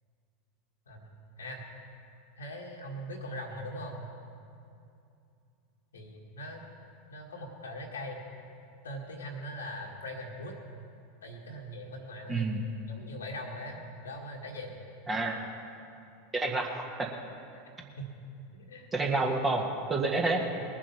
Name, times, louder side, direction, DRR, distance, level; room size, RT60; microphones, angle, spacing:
voice 1, 0.9-1.6 2.4-4.0 5.9-6.6 7.1-8.2 8.8-10.5 11.2-14.7 18.0-18.1 18.5-18.9 20.1-20.6, equal, 75° left, -1 dB, 1.7 m, -41 dB
voice 2, 12.3-12.6 15.1-15.4 16.3-16.7 17.0-17.1 18.9-20.4, right 3 dB, 20° right, 0 dB, 1.7 m, -28 dB
21.0 x 7.4 x 5.9 m, 2.6 s
figure-of-eight pair, 85°, 0 cm